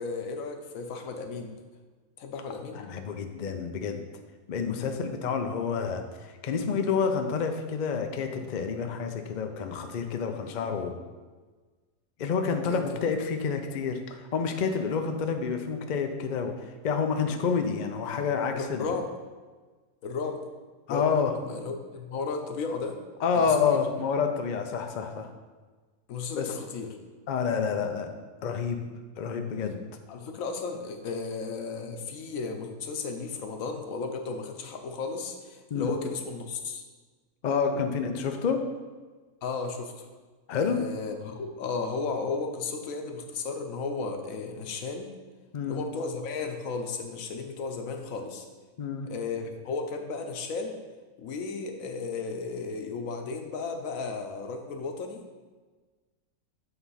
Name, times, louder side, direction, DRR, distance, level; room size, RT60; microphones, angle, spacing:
voice 1, 0.0-1.6 2.2-2.8 4.6-4.9 12.7-12.8 18.5-19.1 20.0-20.4 20.9-23.0 23.3-23.9 26.1-27.0 30.1-36.8 39.4-40.1 40.5-45.1 45.7-48.4 49.1-50.8 51.2-55.2, left 4 dB, 65° left, 5 dB, 1.1 m, -34 dB
voice 2, 2.7-4.1 4.5-11.0 12.2-19.0 20.9-21.4 23.2-25.3 26.3-26.5 27.3-28.1 28.4-28.9 29.2-29.8 35.7-36.0 37.4-38.7 40.5-40.8 45.5-45.8 48.8-49.1, left 6 dB, 90° left, 5 dB, 0.4 m, -29 dB
7.8 x 3.5 x 5.5 m, 1.4 s
omnidirectional pair, 1.6 m